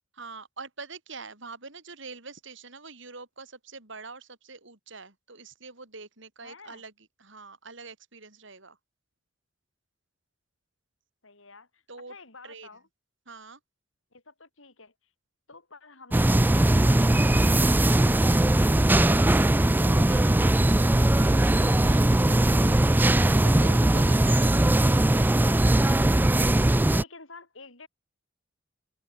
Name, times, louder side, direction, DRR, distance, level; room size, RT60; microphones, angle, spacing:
voice 1, 0.2-6.9 7.2-8.8 11.9-12.2 12.4-12.7 13.3-13.6 19.1-19.5 19.8-24.8, right 4 dB, 65° right, 5.6 m, -45 dB
voice 2, 6.4-6.8 11.2-11.8 12.1-12.9 14.1-14.9 15.5-19.8 26.6-27.9, left 3 dB, 85° left, 7.8 m, -50 dB
sound 1, 16.1-27.0, right 1 dB, 10° right, 0.4 m, -20 dB
head